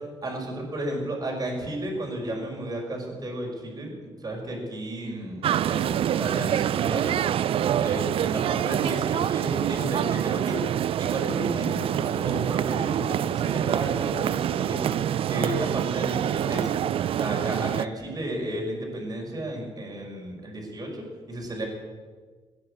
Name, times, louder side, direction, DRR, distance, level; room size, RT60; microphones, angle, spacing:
voice 1, 0.2-3.9 4.2-7.2 7.5-10.6 11.0-15.0 15.3-16.8 17.2-21.7, right 1 dB, 35° right, -1 dB, 5.3 m, -33 dB
sound 1, 5.4-17.9, right 10 dB, 60° right, 0.4 m, -26 dB
17.5 x 9.7 x 8.5 m, 1.4 s
cardioid pair, 85°, 11 cm